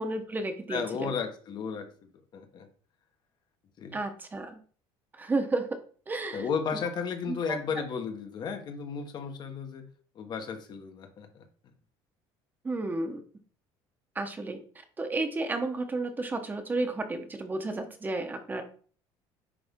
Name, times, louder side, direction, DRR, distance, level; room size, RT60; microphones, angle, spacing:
voice 1, 0.0-1.1 3.9-4.6 5.1-5.7 6.1-6.5 7.3-7.6 12.6-13.2 14.1-14.6 15.0-18.6, right 2 dB, 15° right, 7 dB, 1.1 m, -32 dB
voice 2, 0.7-2.7 3.8-4.0 6.3-9.9 10.1-11.4, left 6 dB, 45° left, 6 dB, 1.4 m, -34 dB
10.0 x 3.5 x 3.7 m, 0.43 s
cardioid pair, 135°, 10 cm